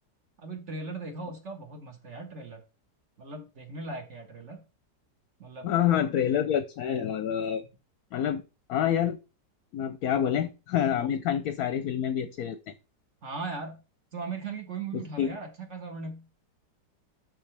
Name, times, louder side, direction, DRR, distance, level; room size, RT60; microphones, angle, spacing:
voice 1, 0.4-2.6 3.2-4.6 5.4-6.0 10.1-10.2 13.2-13.8 14.1-16.4, right 3 dB, 45° right, 1.6 m, -38 dB
voice 2, 5.6-7.6 8.1-8.4 8.7-9.2 9.7-12.7 14.9-15.4, left 9 dB, 70° left, 1.0 m, -27 dB
12.0 x 4.1 x 3.3 m
omnidirectional pair, 1.9 m